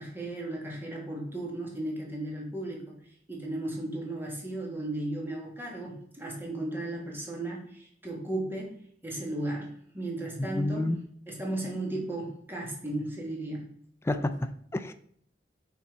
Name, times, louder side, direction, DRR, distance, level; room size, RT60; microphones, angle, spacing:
voice 1, 0.0-3.0 3.3-8.7 9.0-10.9 11.3-13.7, right 1 dB, 15° right, -2 dB, 1.5 m, -35 dB
voice 2, 10.4-11.0 14.0-14.9, left 1 dB, 15° left, 9 dB, 0.3 m, -30 dB
5.6 x 4.1 x 4.6 m, 0.65 s
head